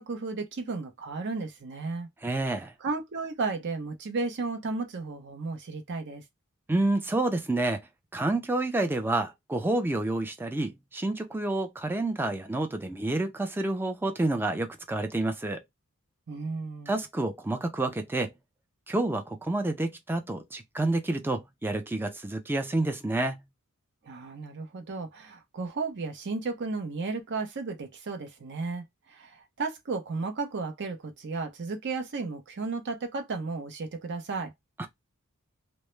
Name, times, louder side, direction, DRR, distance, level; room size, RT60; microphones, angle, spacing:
voice 1, 0.0-2.1 2.8-6.2 16.3-17.0 24.0-34.5, right 3 dB, 55° right, 0.6 m, -34 dB
voice 2, 2.2-2.7 6.7-7.8 8.1-15.6 16.9-18.3 18.9-23.4 34.8-34.9, right 2 dB, 10° right, 0.4 m, -29 dB
2.2 x 2.0 x 3.0 m
head